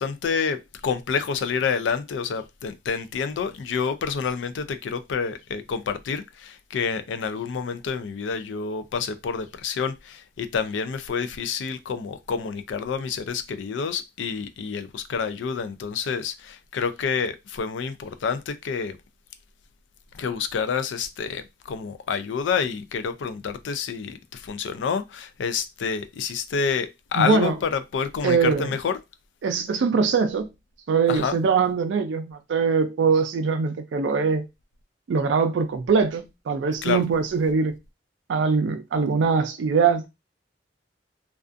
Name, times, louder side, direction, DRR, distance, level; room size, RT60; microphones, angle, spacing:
voice 1, 0.0-19.0 20.1-29.0 31.1-31.4 36.8-37.0, left 6 dB, 85° left, 0.4 m, -28 dB
voice 2, 27.1-27.5 28.2-28.7 29.4-30.5 30.9-34.5 35.1-37.7 38.3-40.1, right 5 dB, 80° right, 0.4 m, -22 dB
2.4 x 2.3 x 2.4 m
head